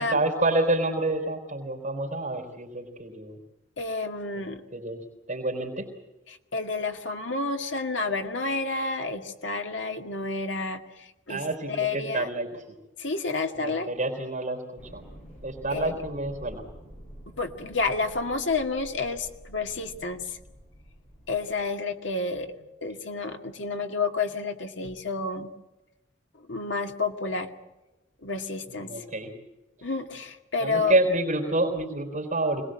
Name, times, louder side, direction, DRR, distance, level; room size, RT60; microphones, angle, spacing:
voice 1, 0.0-3.4 4.3-4.5 4.7-5.9 11.3-12.8 13.5-15.0 15.4-16.6 28.7-29.3 30.6-32.6, right 2 dB, 40° right, 2 dB, 3.8 m, -28 dB
voice 2, 3.8-4.6 6.5-12.3 13.0-13.9 15.7-16.0 17.4-20.4 21.3-22.5 22.8-25.5 26.4-27.5 28.2-28.9 29.8-30.9, left 3 dB, 75° left, 4 dB, 2.1 m, -30 dB
sound 1, 14.8-21.5, equal, 40° left, 7.5 m, -48 dB
26.0 x 20.5 x 7.7 m, 1.0 s
head